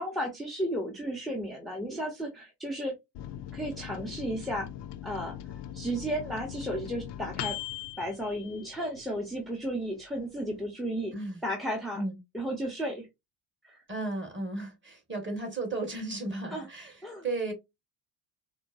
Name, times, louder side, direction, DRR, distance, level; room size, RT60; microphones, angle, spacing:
voice 1, 0.0-2.9 3.5-4.7 5.0-5.4 5.7-7.6 8.0-11.1 11.4-12.0 12.3-13.1 13.6-13.8 16.5-16.7 17.0-17.2, equal, ahead, 0.9 m, -33 dB
Microwave oven, 3.1-9.2 9.6-9.7 10.0-10.6, left 12 dB, 55° left, 0.6 m, -40 dB
voice 2, 11.1-11.4 11.9-12.2 13.9-17.5, right 2 dB, 20° right, 1.9 m, -34 dB
4.4 x 2.1 x 2.6 m
cardioid pair, 90°, 50 cm